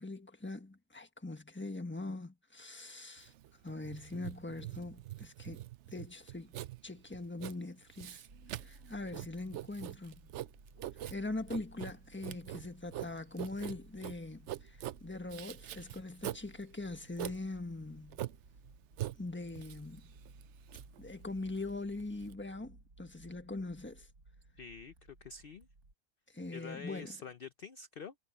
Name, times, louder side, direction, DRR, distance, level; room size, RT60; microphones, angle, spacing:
voice 1, 0.0-3.3 3.6-5.6 5.9-6.5 6.8-8.2 8.6-10.2 11.1-18.2 19.2-20.1 21.0-24.1 26.3-27.2, left 2 dB, 10° left, 1.2 m, -42 dB
Writing, 3.2-22.3, right 13 dB, 65° right, 0.7 m, -44 dB
sound 1, 8.3-25.9, right 2 dB, 85° right, 5.9 m, -59 dB
voice 2, 24.5-25.7 26.5-28.1, left 5 dB, 50° left, 0.8 m, -47 dB
omnidirectional pair, 1.6 m